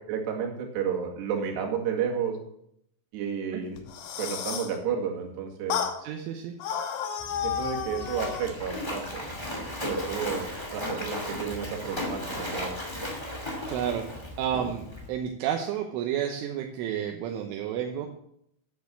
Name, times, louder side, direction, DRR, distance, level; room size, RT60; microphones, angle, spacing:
voice 1, 0.1-2.4 3.1-3.8 4.2-5.8 7.4-9.3 9.8-12.7 14.5-14.7, right 7 dB, 65° right, 1 dB, 3.9 m, -31 dB
sound 1, 3.8-4.8 5.7-6.0 6.6-8.5, left 8 dB, 70° left, 2.3 m, -32 dB
voice 2, 6.0-6.5 9.9-10.0 13.7-18.1, right 9 dB, 80° right, 3 dB, 3.3 m, -31 dB
Splash splatter, 7.2-15.1, left 1 dB, 20° left, 0.7 m, -36 dB
9.7 x 9.3 x 7.5 m, 0.73 s
omnidirectional pair, 5.8 m